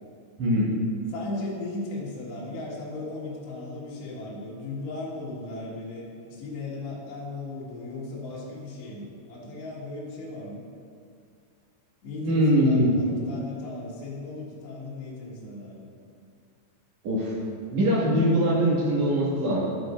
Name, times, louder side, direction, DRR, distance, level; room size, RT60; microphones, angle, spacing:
voice 1, 0.4-0.7 12.2-13.0 17.0-17.3 17.7-19.6, equal, 50° right, -7 dB, 2.7 m, -22 dB
voice 2, 1.1-10.6 12.0-15.9, left 2 dB, 65° left, -6 dB, 3.7 m, -37 dB
11.0 x 10.0 x 2.6 m, 2.4 s
omnidirectional pair, 5.4 m